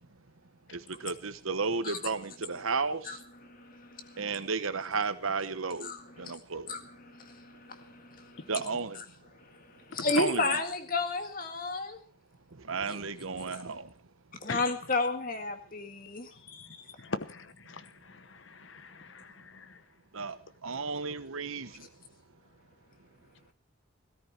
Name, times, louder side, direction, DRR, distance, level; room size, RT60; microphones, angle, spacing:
voice 1, 0.7-3.0 4.2-5.9 6.2-6.7 8.5-9.0 10.2-10.4 12.7-13.9 20.1-20.3 20.6-21.7, right 4 dB, 80° right, 1.1 m, -33 dB
voice 2, 3.0-4.3 5.8-6.4 6.7-8.7 8.9-12.0 12.9-13.0 13.5-13.6 14.4-17.0, left 3 dB, 40° left, 1.9 m, -34 dB
voice 3, 16.7-19.8, left 3 dB, 65° left, 1.0 m, -41 dB
17.5 x 13.5 x 4.5 m
head